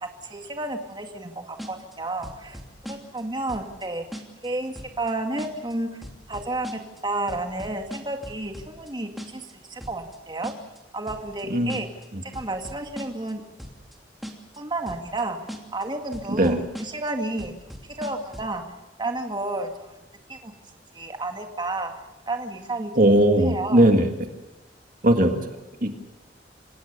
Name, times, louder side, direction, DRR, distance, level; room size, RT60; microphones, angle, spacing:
voice 1, 0.0-2.6 2.9-4.0 4.4-5.9 6.3-6.7 7.0-10.5 10.9-11.9 12.2-13.4 14.6-15.4 15.7-17.5 18.0-18.6 19.0-20.0 20.3-20.5 20.9-21.9 22.3-22.9 23.4-23.9, right 2 dB, 25° right, 4 dB, 2.0 m, -31 dB
sound 1, 1.6-2.0 2.2-3.2 3.5-3.8 4.1-4.5 4.8-5.1 5.4-5.7 6.0-7.0 7.3-8.9 9.2-9.5 9.8-10.2 10.4-10.8 11.1-11.4 11.7-12.1 12.3-13.3 13.6-14.0 14.2-14.6 14.9-15.2 15.5-15.8 16.1-17.1 17.4-18.6, equal, ahead, 2.8 m, -39 dB
voice 2, 16.3-16.6 23.0-24.1 25.0-25.4 25.8-25.9, right 1 dB, 45° right, 5 dB, 1.9 m, -19 dB
27.5 x 17.5 x 6.7 m, 1.1 s
head